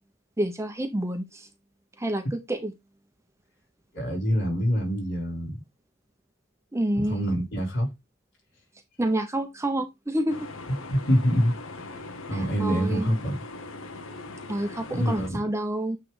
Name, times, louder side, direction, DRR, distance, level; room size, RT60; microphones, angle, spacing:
voice 1, 0.4-1.5 2.0-2.7 6.7-7.2 9.0-10.5 12.3-13.2 14.5-16.0, right 1 dB, 15° right, 0.7 m, -28 dB
voice 2, 3.9-5.6 7.0-7.9 10.9-13.4 14.9-15.4, equal, 55° left, 3.9 m, -26 dB
sound 1, 10.3-15.3, left 3 dB, 80° left, 0.9 m, -40 dB
8.9 x 3.2 x 3.9 m
head